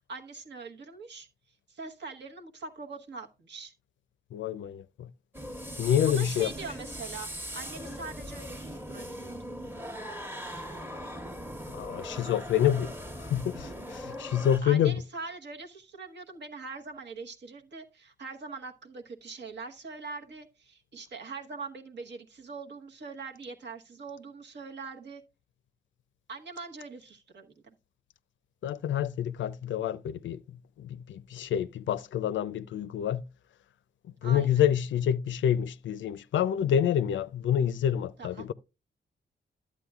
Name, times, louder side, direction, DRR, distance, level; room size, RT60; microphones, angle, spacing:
voice 1, 0.1-1.3 1.7-3.7 6.0-9.3 14.6-25.2 26.3-27.7 34.2-34.6 38.2-38.5, right 4 dB, 65° right, 1.1 m, -42 dB
voice 2, 4.3-5.1 5.8-6.5 11.7-12.9 13.2-15.0 28.6-30.4 30.8-33.2 34.2-38.5, left 10 dB, 80° left, 0.4 m, -27 dB
sound 1, 5.3-14.6, equal, 10° right, 1.1 m, -40 dB
11.5 x 8.4 x 2.3 m
cardioid pair, 80°, 19 cm